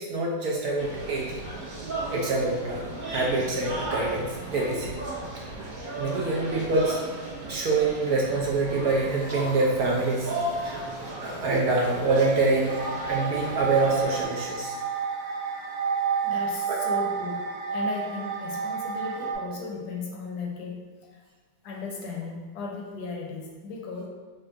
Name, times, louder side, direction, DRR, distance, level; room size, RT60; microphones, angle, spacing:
voice 1, 0.0-1.3 2.1-5.0 5.3-5.4 5.9-7.0 7.5-10.8 11.1-14.7 16.7-16.8, right 3 dB, 70° right, -2 dB, 0.9 m, -26 dB
sound 1, 0.8-14.2, right 2 dB, 40° right, 0.7 m, -35 dB
sound 2, 12.7-19.3, right 6 dB, 85° right, 1.3 m, -30 dB
voice 2, 16.2-20.8 21.6-24.1, left 4 dB, 70° left, -1 dB, 1.1 m, -36 dB
3.4 x 2.4 x 4.4 m, 1.4 s
omnidirectional pair, 1.9 m